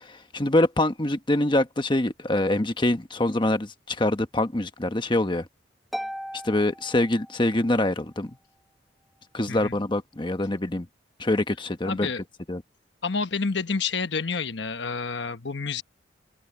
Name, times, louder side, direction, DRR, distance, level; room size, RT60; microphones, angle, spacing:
voice 1, 0.1-5.4 6.4-8.3 9.3-10.9 11.2-12.1 12.5-12.6, left 1 dB, 25° left, 1.2 m, -24 dB
Harp, 5.9-7.8, equal, ahead, 1.0 m, -37 dB
voice 2, 11.8-12.2 13.0-15.8, left 4 dB, 65° left, 1.1 m, -29 dB
open air
head